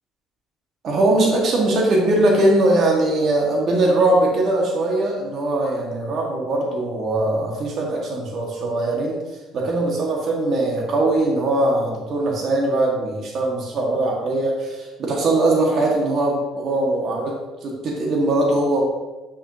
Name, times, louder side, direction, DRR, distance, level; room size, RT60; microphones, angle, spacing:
voice 1, 0.8-9.2 9.5-17.4 17.6-18.8, right 2 dB, 55° right, -2 dB, 1.6 m, -21 dB
9.7 x 6.2 x 2.8 m, 1.2 s
cardioid pair, 115°, 0 cm